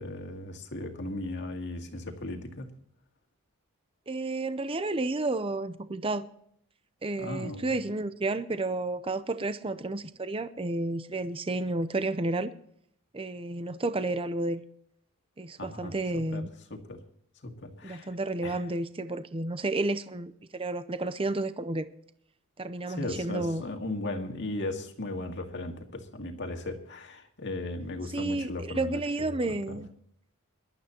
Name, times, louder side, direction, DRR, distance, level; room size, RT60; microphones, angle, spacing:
voice 1, 0.0-2.7 7.2-7.6 15.6-15.9 16.3-16.4 16.7-17.0 17.4-18.1 18.4-18.6 22.9-29.4 29.7-29.8, left 2 dB, 55° left, 2.1 m, -36 dB
voice 2, 4.1-6.3 7.0-12.5 13.1-14.6 15.4-16.5 17.8-21.9 22.6-23.6 28.1-29.9, right 2 dB, 25° right, 0.6 m, -31 dB
23.0 x 12.0 x 3.0 m
head